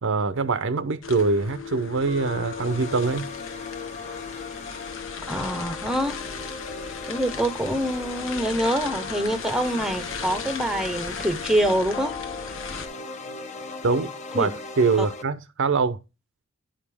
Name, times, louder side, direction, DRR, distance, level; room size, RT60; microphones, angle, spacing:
voice 1, 0.0-3.3 13.8-14.5 14.8-16.0, right 4 dB, 60° right, 0.7 m, -24 dB
sound 1, 1.0-12.9, left 6 dB, 65° left, 1.1 m, -36 dB
sound 2, 2.1-15.2, left 4 dB, 35° left, 0.9 m, -38 dB
voice 2, 5.3-6.2 7.1-12.2 14.3-14.5 15.0-15.1, right 1 dB, ahead, 0.8 m, -25 dB
10.5 x 5.1 x 3.4 m
head